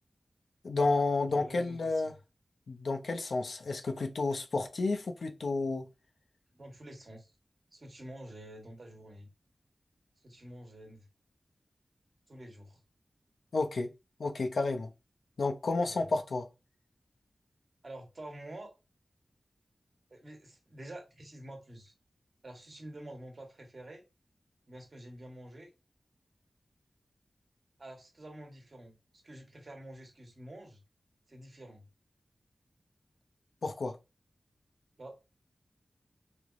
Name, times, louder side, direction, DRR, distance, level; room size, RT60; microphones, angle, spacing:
voice 1, 0.6-2.1 2.7-5.9 13.5-13.9 14.2-14.9 15.4-16.5 33.6-34.0, left 3 dB, 80° left, 0.5 m, -31 dB
voice 2, 1.2-2.2 6.5-7.3 7.7-9.3 10.2-11.1 12.3-12.8 15.8-16.1 17.8-18.7 20.1-21.9 22.4-24.0 24.7-25.7 27.8-29.0 29.2-30.8 31.3-31.9 35.0-35.1, right 1 dB, 50° right, 1.1 m, -48 dB
3.2 x 2.9 x 2.4 m
wide cardioid pair, 85°, 0 cm